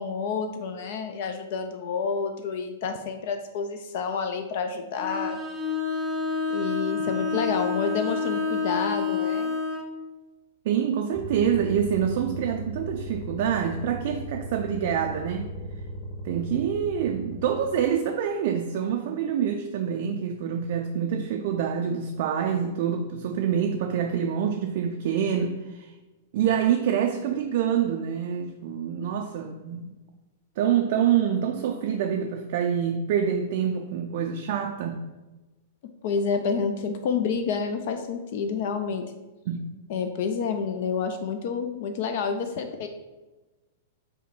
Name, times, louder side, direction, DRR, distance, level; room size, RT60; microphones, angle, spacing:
voice 1, 0.0-5.4 6.5-9.5 36.0-39.0 39.9-42.9, left 5 dB, 50° left, 6 dB, 0.4 m, -29 dB
Bowed string instrument, 5.0-9.9, left 4 dB, 5° right, 0.6 m, -28 dB
voice 2, 10.7-15.5 16.2-25.9 26.3-29.9 30.6-35.0 39.5-39.7, right 8 dB, 50° right, 3 dB, 0.4 m, -26 dB
sound 1, 11.1-17.9, equal, 25° left, 1.1 m, -37 dB
5.3 x 2.1 x 4.6 m, 1.1 s
figure-of-eight pair, 100°, 0 cm